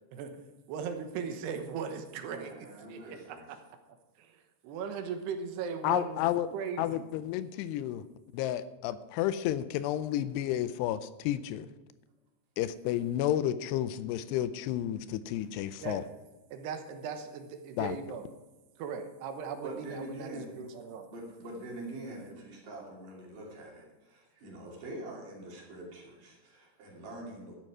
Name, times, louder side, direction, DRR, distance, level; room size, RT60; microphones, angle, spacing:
voice 1, 0.1-0.4 0.7-3.6 4.2-6.2 6.5-7.1 15.8-16.1 16.5-18.3 18.8-21.1, right 6 dB, 80° right, 6 dB, 3.2 m, -38 dB
voice 2, 2.2-3.5 19.6-20.6 21.1-27.6, right 1 dB, 55° right, -1 dB, 4.2 m, -44 dB
voice 3, 5.8-6.5 6.8-8.0 8.3-11.7 12.6-16.0 17.8-18.0, left 12 dB, 85° left, 14 dB, 2.7 m, -31 dB
13.5 x 10.5 x 4.9 m, 1.1 s
omnidirectional pair, 4.8 m